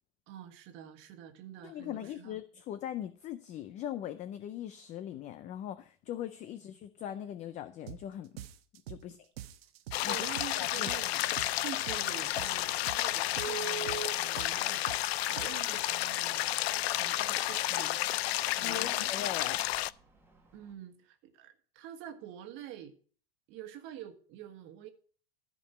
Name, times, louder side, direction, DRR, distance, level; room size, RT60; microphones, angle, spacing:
voice 1, 0.3-2.4 9.0-9.2 10.0-18.2 18.6-19.5 20.5-22.9 23.5-24.9, right 11 dB, 40° right, 7 dB, 1.6 m, -47 dB
voice 2, 1.6-8.4 8.9-9.2 10.0-10.2 10.5-10.9 18.4-19.7, left 11 dB, 25° left, 12 dB, 0.5 m, -40 dB
sound 1, 7.9-8.1 8.4-9.1 9.4-10.1 10.4-11.1 11.4-12.1 12.4-13.1 13.4-14.1 14.4-15.1 15.4-15.8, right 12 dB, 75° right, 1.0 m, -45 dB
sound 2, 9.9-19.9, left 16 dB, 90° left, 0.5 m, -31 dB
Telephone, 12.6-12.7 13.3-18.2 18.7-18.8 19.2-19.3 19.7-20.0 20.3-20.4, right 5 dB, 5° right, 1.6 m, -42 dB
14.0 x 5.3 x 5.5 m, 0.43 s
supercardioid pair, 145°, 31 cm